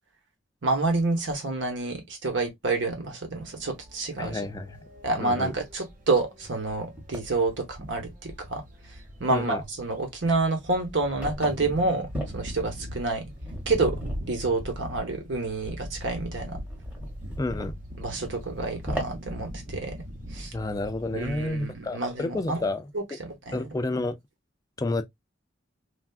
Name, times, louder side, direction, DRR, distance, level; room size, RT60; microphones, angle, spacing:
voice 1, 0.6-4.4 5.0-8.6 9.2-12.1 12.3-13.3 13.7-14.0 14.3-16.6 18.0-19.9 20.3-20.5 21.1-22.6 22.9-23.7, right 3 dB, 70° right, 1.0 m, -28 dB
sound 1, 3.4-21.5, equal, 45° right, 0.8 m, -42 dB
voice 2, 4.2-4.8 5.2-5.5 9.3-9.6 17.4-17.7 20.5-22.9 23.5-24.2 24.8-25.0, left 2 dB, 20° left, 0.3 m, -30 dB
sound 2, 4.7-4.8 5.3-5.4 5.7-7.3 8.3-8.4 8.8-9.2 9.4-9.8 10.6-20.0, equal, 10° right, 0.9 m, -40 dB
3.3 x 2.4 x 2.3 m
head